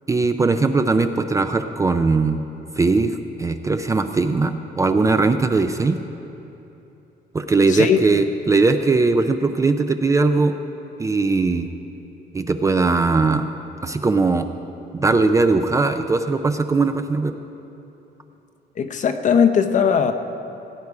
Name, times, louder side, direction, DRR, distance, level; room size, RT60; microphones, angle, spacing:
voice 1, 0.1-2.4 2.8-6.0 7.3-10.5 11.0-11.7 12.3-13.5 13.8-14.5 14.9-17.3, right 3 dB, 20° right, 8 dB, 0.4 m, -19 dB
voice 2, 7.7-8.0 18.8-20.1, left 7 dB, 45° left, 8 dB, 0.7 m, -18 dB
16.5 x 9.5 x 4.8 m, 2.9 s
cardioid pair, 145°, 17 cm